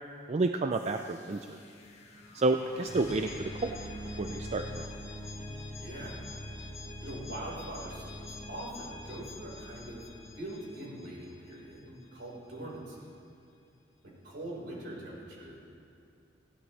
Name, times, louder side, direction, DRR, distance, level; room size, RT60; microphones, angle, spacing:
voice 1, 0.3-1.6 2.3-3.8 4.2-4.9, right 3 dB, 35° right, 6 dB, 0.4 m, -30 dB
sound 1, 0.7-11.5, left 1 dB, 35° left, 1.8 m, -44 dB
voice 2, 5.8-6.3 7.0-13.1 14.0-15.6, right 1 dB, 65° right, -4 dB, 4.4 m, -43 dB
20.0 x 16.5 x 3.3 m, 2.4 s
head